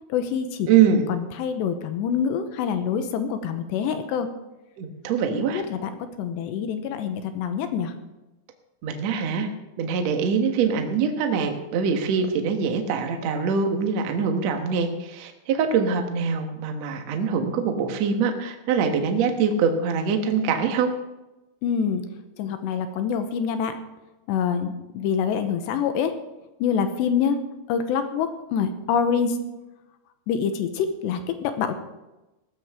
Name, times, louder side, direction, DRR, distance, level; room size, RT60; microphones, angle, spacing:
voice 1, 0.1-0.7 1.1-4.3 5.3-7.9 21.6-22.0 22.4-23.8 24.3-26.1 26.6-27.4 27.7-29.4 30.3-31.7, left 7 dB, 80° left, 8 dB, 3.0 m, -26 dB
voice 2, 0.7-1.0 4.8-5.6 8.8-9.5 9.8-20.9, right 6 dB, 75° right, 4 dB, 1.5 m, -23 dB
17.0 x 13.5 x 3.6 m, 1.0 s
omnidirectional pair, 5.3 m